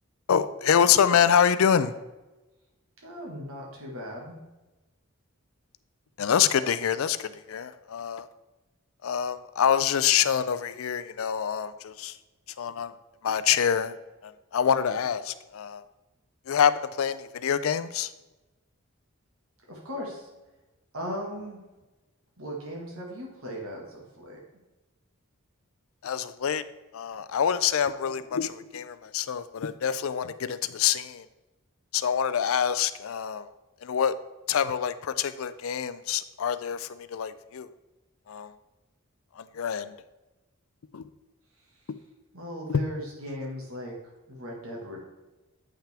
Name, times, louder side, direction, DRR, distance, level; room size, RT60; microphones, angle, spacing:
voice 1, 0.3-2.0 6.2-8.3 9.0-12.2 12.6-12.9 13.2-13.9 14.2-15.8 16.5-18.1 26.0-26.6 26.9-31.3 31.9-33.5 33.8-34.1 34.5-37.7 38.3-38.5 39.4-39.9 40.9-41.1 42.7-42.8, left 8 dB, 75° left, 13 dB, 0.4 m, -26 dB
voice 2, 3.0-4.3 19.7-20.3 20.9-21.6 22.4-24.4 42.3-43.9 44.3-45.0, equal, 80° right, -2 dB, 1.6 m, -37 dB
8.8 x 5.7 x 3.4 m, 1.1 s
head